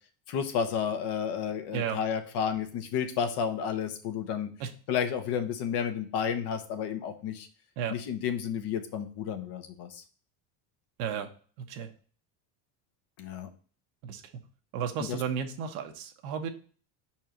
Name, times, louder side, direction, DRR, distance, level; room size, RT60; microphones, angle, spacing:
voice 1, 0.3-4.5 4.9-7.5 7.9-10.0 13.2-13.5 15.0-15.2, left 7 dB, 60° left, 7 dB, 1.2 m, -31 dB
voice 2, 11.0-11.3 11.7-11.9 14.0-14.2 14.7-16.5, right 8 dB, 80° right, 5 dB, 1.3 m, -33 dB
5.3 x 4.5 x 4.4 m, 0.41 s
cardioid pair, 125°, 45 cm